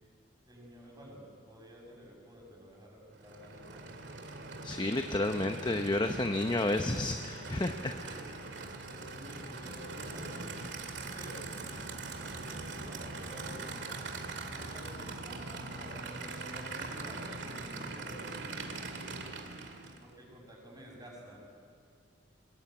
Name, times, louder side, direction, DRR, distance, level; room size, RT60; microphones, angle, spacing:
voice 1, 0.5-4.0 6.0-6.2 7.4-8.3 8.9-10.5 11.1-11.5 12.2-13.8 14.5-19.3 20.0-21.4, equal, 20° right, -1 dB, 6.5 m, -50 dB
Aircraft / Idling, 3.1-20.1, right 3 dB, 70° right, 2.3 m, -42 dB
voice 2, 4.6-7.9, left 2 dB, 25° left, 6 dB, 0.9 m, -31 dB
22.5 x 21.5 x 9.0 m, 2.2 s
head